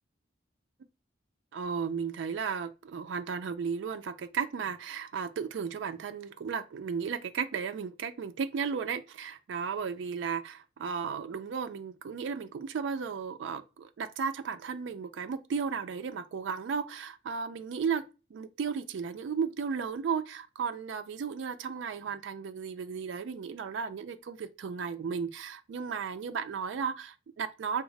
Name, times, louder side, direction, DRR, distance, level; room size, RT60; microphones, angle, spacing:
voice 1, 1.5-18.1 18.3-27.8, right 6 dB, 80° right, 0.4 m, -34 dB
3.6 x 2.0 x 3.2 m
head